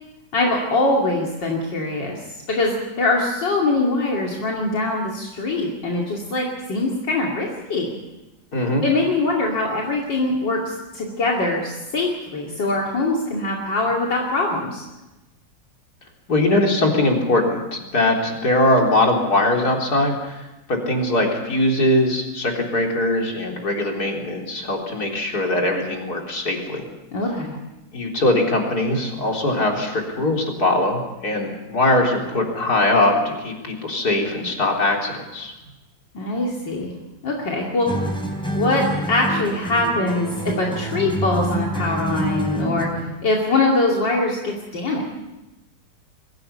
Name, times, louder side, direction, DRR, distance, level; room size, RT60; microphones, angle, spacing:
voice 1, 0.3-2.2 2.5-7.9 8.8-14.8 27.1-27.6 36.1-36.9 37.2-37.9 38.5-40.3 40.6-45.1, left 2 dB, 70° left, -2 dB, 3.3 m, -23 dB
voice 2, 8.5-8.8 16.3-20.4 20.7-26.9 27.9-35.5, left 1 dB, 55° left, 0 dB, 4.4 m, -21 dB
sound 1, 37.9-43.2, right 1 dB, ahead, 3.7 m, -27 dB
23.0 x 16.5 x 8.5 m, 1.0 s
omnidirectional pair, 2.0 m